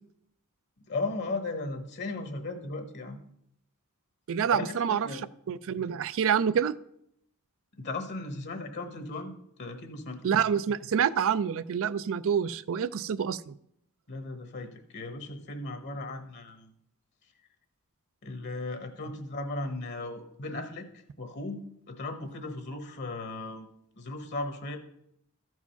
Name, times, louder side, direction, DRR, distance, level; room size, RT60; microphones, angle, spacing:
voice 1, 0.9-3.2 4.5-5.2 7.7-9.3 9.6-10.3 14.1-16.7 18.2-23.7 24.0-24.8, left 2 dB, 55° left, 7 dB, 1.1 m, -36 dB
voice 2, 4.3-5.1 5.5-6.8 10.2-13.5, right 7 dB, 65° right, 17 dB, 0.4 m, -27 dB
13.5 x 4.8 x 5.7 m, 0.74 s
head